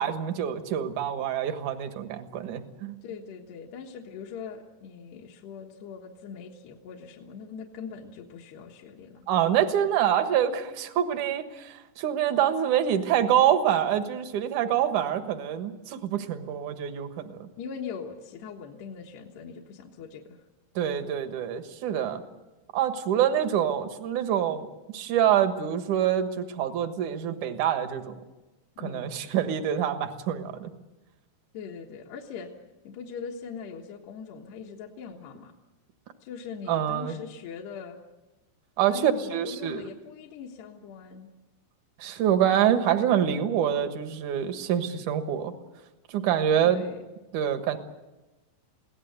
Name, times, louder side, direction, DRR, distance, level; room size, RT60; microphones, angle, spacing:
voice 1, 0.0-2.9 9.3-17.5 20.8-22.2 22.7-24.7 24.9-28.1 28.8-30.7 36.7-37.2 38.8-39.9 42.0-45.5 46.1-46.8 47.3-47.8, right 9 dB, 65° right, 8 dB, 2.0 m, -26 dB
voice 2, 3.0-9.2 17.6-20.5 28.8-29.1 31.5-32.5 32.8-35.5 36.2-38.0 38.9-41.3 46.6-47.0, left 6 dB, 70° left, -1 dB, 3.2 m, -41 dB
23.5 x 17.5 x 8.1 m, 1.1 s
omnidirectional pair, 5.3 m